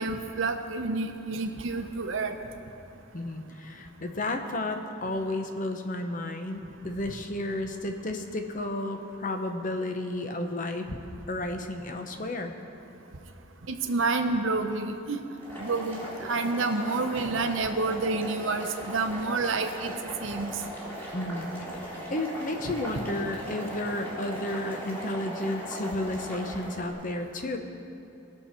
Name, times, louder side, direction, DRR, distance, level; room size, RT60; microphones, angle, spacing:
voice 1, 0.0-2.3 13.7-15.2 15.6-19.9 20.2-20.5 22.6-22.7, right 3 dB, 70° right, 6 dB, 0.8 m, -29 dB
voice 2, 3.1-11.0 11.3-12.5 21.1-21.5 21.7-27.6, left 1 dB, 40° left, 5 dB, 0.8 m, -32 dB
Boiling, 15.3-26.9, equal, 10° left, 2.2 m, -39 dB
19.0 x 6.7 x 4.4 m, 2.8 s
head